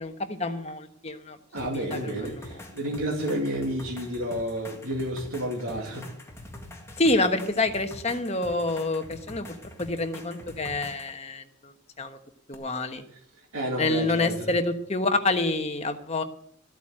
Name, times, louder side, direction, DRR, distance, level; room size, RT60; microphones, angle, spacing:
voice 1, 0.0-1.4 1.7-2.1 7.0-11.7 12.0-12.2 12.5-13.0 13.8-16.2, left 2 dB, 30° left, 1.2 m, -27 dB
voice 2, 1.5-6.1 13.5-14.5, right 1 dB, 75° right, 2.4 m, -31 dB
sound 1, 1.6-11.2 12.5-12.6, left 1 dB, 10° left, 1.9 m, -45 dB
13.5 x 8.2 x 8.9 m
head